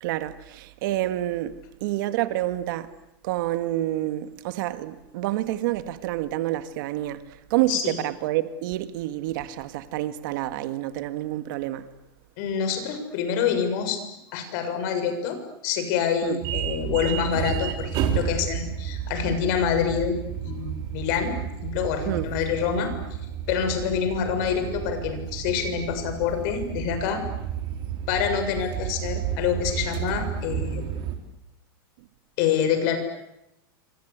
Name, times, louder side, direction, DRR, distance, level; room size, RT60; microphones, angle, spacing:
voice 1, 0.0-2.9 3.2-7.2 7.5-11.9 16.2-16.4 22.1-22.3, right 15 dB, 60° right, 1.9 m, -28 dB
voice 2, 12.4-14.0 14.3-20.2 20.4-21.3 21.6-22.9 23.5-27.2 28.1-30.8 32.4-33.0, left 7 dB, 55° left, 6.7 m, -26 dB
sound 1, 16.4-31.2, right 9 dB, 40° right, 4.3 m, -31 dB
27.5 x 26.0 x 8.4 m
supercardioid pair, 145°, 12 cm